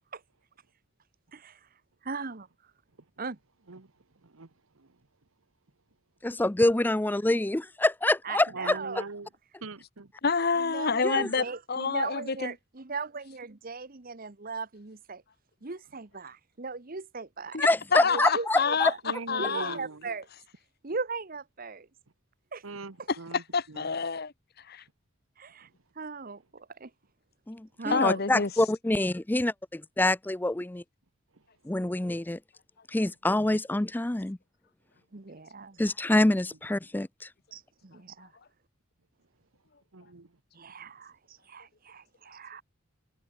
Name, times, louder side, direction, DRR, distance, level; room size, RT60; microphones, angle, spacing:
voice 1, 2.0-2.5 3.2-3.4 8.2-9.1 10.6-15.2 15.6-17.6 18.0-19.0 19.4-20.3 20.8-21.9 22.5-22.6 25.4-25.7 26.0-26.9 27.8-28.2 35.1-35.8 37.5-38.3 40.5-42.6, right 4 dB, 45° right, 1.1 m, -38 dB
voice 2, 4.2-5.0 8.5-9.3 9.6-10.1 19.0-20.1 22.6-24.0 25.6-25.7 31.3-31.4 39.9-40.3 40.8-40.9, right 3 dB, 85° right, 1.3 m, -42 dB
voice 3, 6.2-8.4 11.0-11.3 17.6-18.9 27.5-30.8 31.7-32.4 32.9-34.4 35.8-37.3, left 1 dB, 10° left, 0.4 m, -26 dB
voice 4, 10.2-12.5 17.5-18.9 19.3-19.8 23.5-24.3 24.7-24.8 27.9-28.5, left 5 dB, 50° left, 1.1 m, -28 dB
head